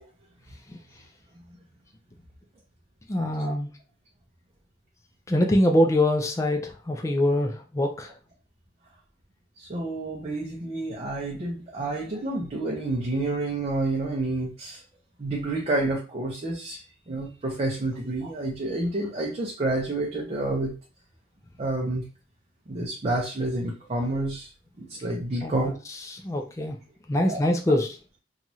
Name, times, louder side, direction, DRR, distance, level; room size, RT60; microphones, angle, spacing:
voice 1, 3.1-3.7 5.3-8.1 25.4-26.8 27.1-28.0, left 1 dB, 15° left, 3 dB, 0.4 m, -24 dB
voice 2, 9.6-14.8 15.2-16.8 17.1-20.7 21.6-22.0 22.7-24.5 24.8-25.7 27.3-27.4, right 2 dB, 35° right, -2 dB, 0.5 m, -29 dB
3.0 x 2.3 x 2.7 m, 0.34 s
head